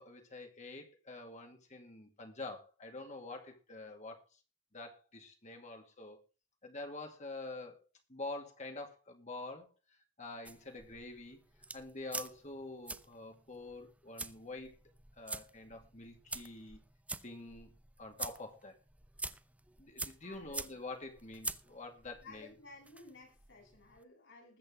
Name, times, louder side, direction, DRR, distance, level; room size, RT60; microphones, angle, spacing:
voice 1, 0.0-4.2 4.7-6.2 6.6-7.8 8.1-9.7 10.2-11.4 11.7-14.8 15.2-16.8 17.2-17.7 18.0-18.8 19.8-22.5, left 2 dB, 40° left, 2.3 m, -46 dB
sound 1, 10.4-24.0, right 3 dB, 5° right, 0.6 m, -47 dB
voice 2, 20.2-20.7 22.2-24.6, left 3 dB, 70° left, 7.9 m, -55 dB
20.0 x 8.0 x 3.9 m
head